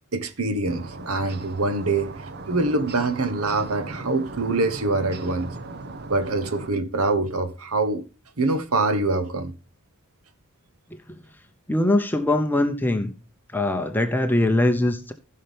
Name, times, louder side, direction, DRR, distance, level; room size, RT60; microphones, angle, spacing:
voice 1, 0.1-2.2 2.5-5.5 6.1-8.0 8.4-9.5, right 2 dB, 75° right, 1.2 m, -24 dB
sound 1, 0.7-6.7, right 2 dB, 50° right, 1.0 m, -37 dB
voice 2, 11.7-13.1 13.5-15.1, left 1 dB, 10° left, 0.7 m, -22 dB
15.5 x 5.6 x 3.4 m
head